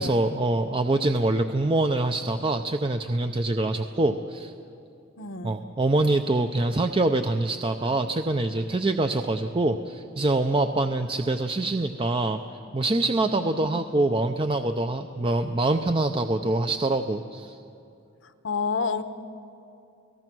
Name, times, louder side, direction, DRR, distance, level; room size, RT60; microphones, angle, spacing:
voice 1, 0.0-4.5 5.4-12.4 12.7-17.6, right 2 dB, 25° right, 7 dB, 0.6 m, -25 dB
voice 2, 5.2-5.6 13.2-13.7 18.2-19.0, left 4 dB, 70° left, 11 dB, 1.0 m, -30 dB
29.0 x 18.5 x 6.1 m, 2.7 s
head